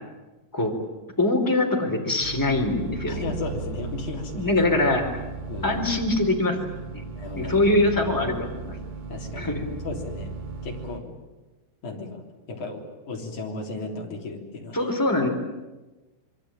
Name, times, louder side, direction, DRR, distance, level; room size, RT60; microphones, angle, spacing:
voice 1, 1.2-3.2 4.3-5.0 5.6-6.6 6.9-7.0 7.3-8.8 9.4-9.8 14.7-15.3, left 2 dB, 5° left, 1 dB, 2.9 m, -23 dB
sound 1, 2.2-11.0, right 4 dB, 65° right, 4.5 m, -36 dB
voice 2, 3.1-4.5 5.5-5.9 7.2-7.7 9.1-9.6 9.8-10.3 10.6-11.1 11.8-14.8, left 3 dB, 40° left, 0 dB, 4.4 m, -35 dB
26.5 x 23.5 x 9.0 m, 1.2 s
omnidirectional pair, 5.9 m